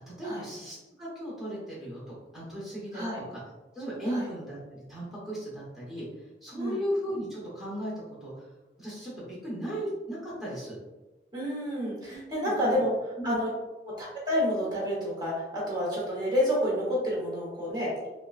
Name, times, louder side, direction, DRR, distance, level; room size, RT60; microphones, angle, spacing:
voice 1, 0.1-2.0 2.3-3.4 3.7-7.9 8.2-8.5 8.8-10.8 12.1-12.8 13.2-13.4, equal, ahead, -7 dB, 1.0 m, -36 dB
voice 2, 11.3-12.9 13.2-13.5 13.9-18.1, equal, 25° right, -6 dB, 1.1 m, -29 dB
3.6 x 2.3 x 2.4 m, 1.1 s
head